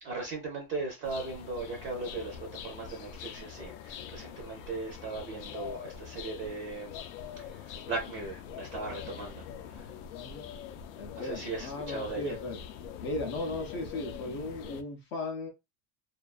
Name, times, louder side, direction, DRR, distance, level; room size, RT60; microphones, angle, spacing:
voice 1, 0.0-2.4 2.6-7.0 7.4-9.9 11.1-12.4, right 3 dB, 30° right, 0.5 m, -38 dB
sound 1, 1.0-14.8, left 8 dB, 80° left, 0.5 m, -44 dB
voice 2, 10.1-10.5 11.0-12.6 13.0-15.5, left 2 dB, 30° left, 0.4 m, -36 dB
2.3 x 2.3 x 2.3 m
cardioid pair, 165°, 40 cm